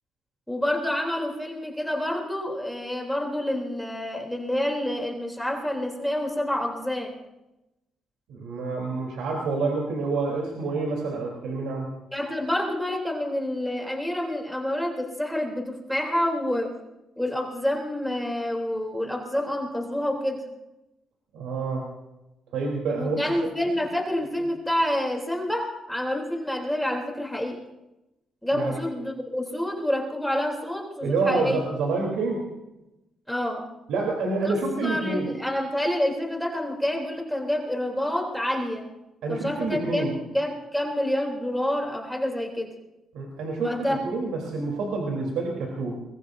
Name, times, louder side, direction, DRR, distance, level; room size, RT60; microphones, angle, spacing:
voice 1, 0.5-7.1 12.1-16.7 17.2-20.4 23.0-27.6 28.4-31.6 33.3-33.7 34.4-34.6 34.8-38.8 39.3-42.7 43.6-44.0, left 1 dB, 5° left, 0 dB, 3.2 m, -28 dB
voice 2, 8.3-11.9 21.3-21.9 22.5-23.2 28.5-28.8 31.0-32.5 33.9-35.3 39.2-40.2 43.1-46.0, right 3 dB, 85° right, -1 dB, 3.4 m, -28 dB
24.0 x 21.5 x 2.7 m, 0.96 s
cardioid pair, 90°, 0 cm